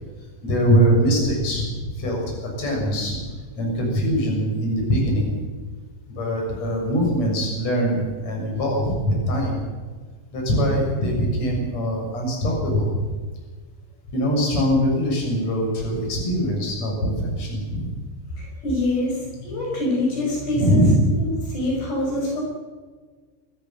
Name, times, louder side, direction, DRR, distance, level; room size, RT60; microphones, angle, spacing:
voice 1, 0.4-1.6 2.0-3.2 3.6-5.4 6.1-9.6 10.3-13.1 14.1-17.9 20.5-21.1, equal, 35° left, -1 dB, 7.6 m, -22 dB
voice 2, 18.3-20.9 21.2-22.4, left 1 dB, 60° left, -1 dB, 7.5 m, -25 dB
27.5 x 14.0 x 7.5 m, 1.4 s
omnidirectional pair, 5.4 m